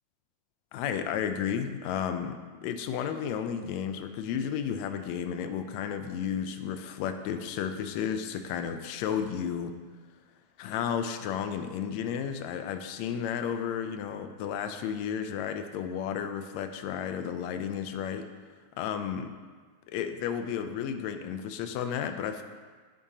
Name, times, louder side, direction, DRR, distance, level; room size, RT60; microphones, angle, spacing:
voice 1, 0.7-9.7 10.6-18.3 18.8-19.3 19.9-22.4, left 8 dB, 80° left, 8 dB, 1.7 m, -33 dB
9.7 x 8.5 x 2.8 m, 1.5 s
omnidirectional pair, 3.5 m